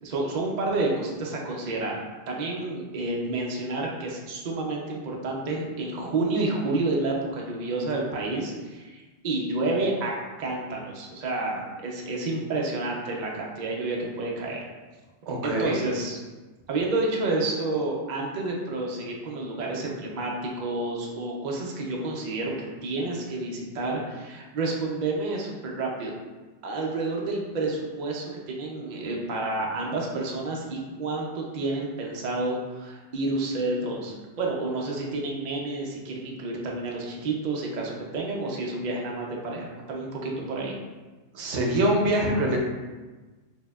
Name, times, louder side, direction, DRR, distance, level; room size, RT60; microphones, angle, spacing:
voice 1, 0.0-10.1 10.4-14.6 15.4-16.2 16.7-26.1 26.6-40.7, right 2 dB, 50° right, -1 dB, 0.6 m, -30 dB
voice 2, 15.3-15.8 41.3-42.6, right 1 dB, 75° right, 0 dB, 0.9 m, -24 dB
4.3 x 2.7 x 2.3 m, 1.3 s
omnidirectional pair, 1.2 m